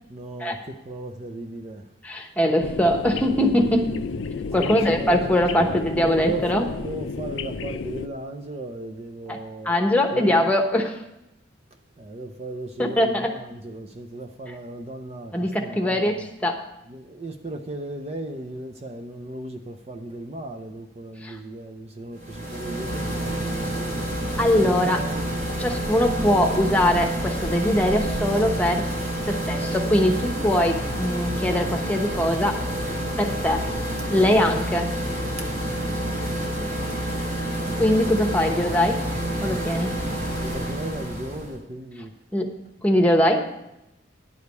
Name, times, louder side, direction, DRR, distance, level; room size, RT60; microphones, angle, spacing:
voice 1, 0.1-1.9 4.6-5.2 5.6-9.7 10.1-10.4 12.0-16.2 16.9-24.0 24.4-25.3 34.0-34.1 35.4-35.5 40.4-42.1, right 1 dB, 35° right, 0.6 m, -36 dB
voice 2, 2.0-3.9 4.5-6.6 9.3-9.4 9.6-11.0 12.8-13.3 15.3-16.7 21.2-21.4 24.4-25.0 25.6-28.9 29.3-32.6 33.2-33.7 34.1-34.9 37.8-39.1 39.4-40.0 42.3-42.5 42.8-43.4, left 1 dB, 10° left, 1.0 m, -22 dB
sound 1, 2.6-8.1, left 5 dB, 80° left, 0.4 m, -32 dB
sound 2, 22.1-41.5, right 1 dB, 50° right, 2.9 m, -28 dB
10.5 x 5.0 x 8.1 m
head